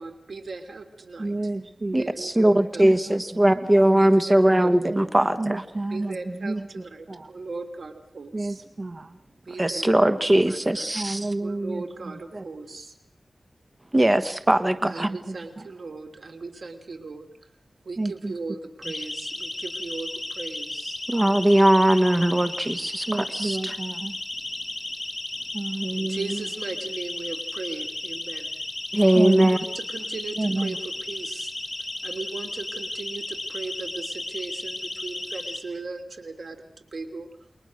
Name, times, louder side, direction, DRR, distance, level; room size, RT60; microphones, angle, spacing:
voice 1, 0.0-1.3 2.0-2.9 3.9-4.7 5.9-8.6 9.5-10.6 11.4-12.9 14.9-17.3 17.8-21.0 25.9-28.6 29.5-30.8 31.1-31.5 32.0-37.3, right 3 dB, 85° right, 6 dB, 3.1 m, -37 dB
voice 2, 1.2-2.0 2.5-3.7 4.9-7.3 8.3-9.2 10.9-12.4 14.8-15.7 18.0-18.3 23.1-24.2 25.5-26.5 29.1-29.6 30.3-30.8, right 2 dB, 45° right, 9 dB, 1.0 m, -30 dB
voice 3, 1.9-5.6 9.6-11.3 13.9-15.1 21.1-23.7 28.9-29.6, right 1 dB, 25° right, 10 dB, 1.2 m, -20 dB
Siren, 18.8-35.6, left 2 dB, 25° left, 3.5 m, -34 dB
29.0 x 22.0 x 6.5 m, 0.63 s
wide cardioid pair, 75°, 0 cm